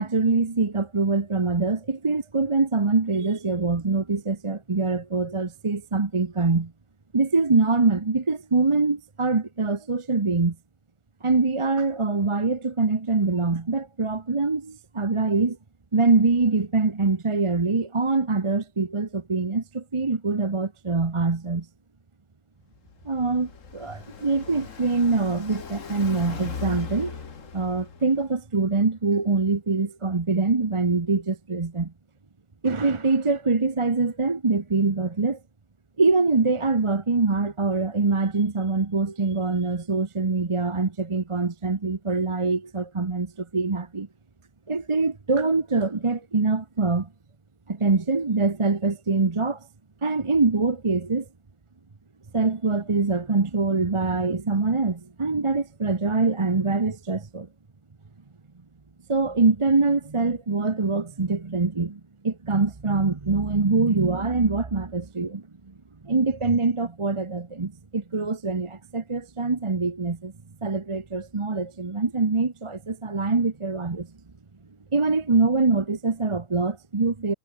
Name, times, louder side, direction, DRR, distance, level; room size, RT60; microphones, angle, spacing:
voice 1, 0.0-6.7 7.1-10.6 11.2-15.6 15.9-21.7 23.0-27.2 27.5-31.9 32.6-35.4 36.0-44.1 44.7-47.1 47.7-49.7 50.0-51.3 52.3-57.5 59.1-65.4 66.0-70.3 70.6-74.1 74.9-77.3, right 3 dB, 25° right, 1.0 m, -24 dB
Car passing by, 22.7-28.3, left 6 dB, 65° left, 2.0 m, -39 dB
omnidirectional pair, 1.5 m